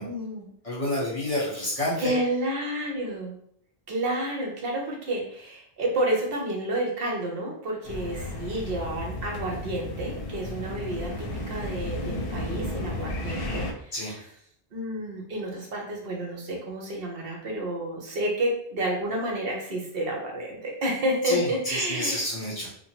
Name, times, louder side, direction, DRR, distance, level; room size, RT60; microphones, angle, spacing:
voice 1, 0.0-0.5 2.0-3.4 3.9-13.9 14.7-22.2, right 1 dB, 65° right, -1 dB, 0.9 m, -30 dB
voice 2, 0.6-2.1 13.9-14.2 21.2-22.7, left 1 dB, 35° left, -7 dB, 0.9 m, -29 dB
sound 1, 7.8-13.7, left 1 dB, 70° left, 0.7 m, -33 dB
2.9 x 2.2 x 2.9 m, 0.66 s
omnidirectional pair, 1.1 m